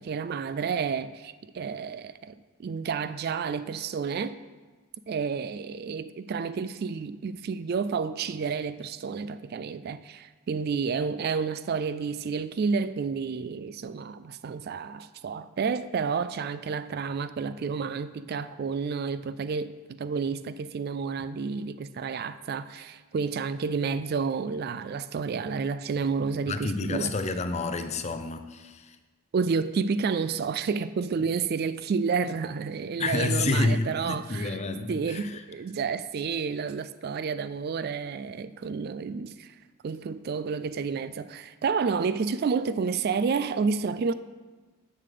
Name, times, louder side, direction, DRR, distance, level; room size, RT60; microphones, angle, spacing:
voice 1, 0.0-2.3 2.6-4.4 5.1-27.1 29.3-34.6 34.9-39.5 39.8-44.1, right 5 dB, 45° right, 0.3 m, -30 dB
voice 2, 26.5-29.0 33.0-35.4, left 3 dB, 30° left, 0.5 m, -29 dB
7.2 x 6.6 x 6.7 m
head